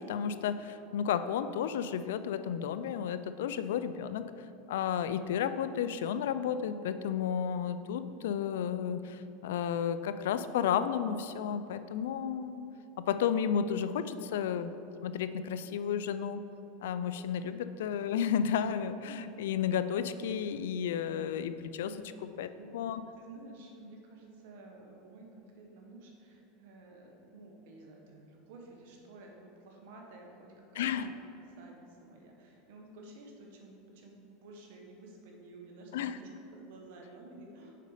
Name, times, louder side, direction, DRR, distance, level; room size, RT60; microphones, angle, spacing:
voice 1, 0.0-4.3 4.7-12.6 13.0-14.7 15.0-16.4 16.8-21.9 22.4-22.5 22.7-23.0 30.8-31.1 35.9-36.1, left 8 dB, 85° left, 12 dB, 0.3 m, -32 dB
voice 2, 23.1-31.1 31.6-37.8, right 2 dB, 70° right, 1 dB, 1.4 m, -52 dB
6.5 x 5.3 x 4.9 m, 2.9 s
supercardioid pair, 125°, 0 cm